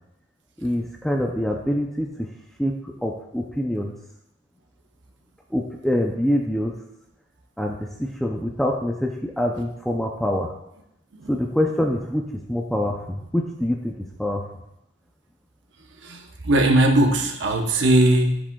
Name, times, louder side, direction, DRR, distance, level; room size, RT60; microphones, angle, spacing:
voice 1, 0.6-2.3 2.6-3.9 5.5-6.7 7.6-10.5 11.3-13.9 14.2-14.4, equal, ahead, 0 dB, 0.4 m, -25 dB
voice 2, 16.0-18.4, right 1 dB, 65° right, 3 dB, 0.8 m, -19 dB
10.5 x 5.0 x 2.3 m, 0.82 s
head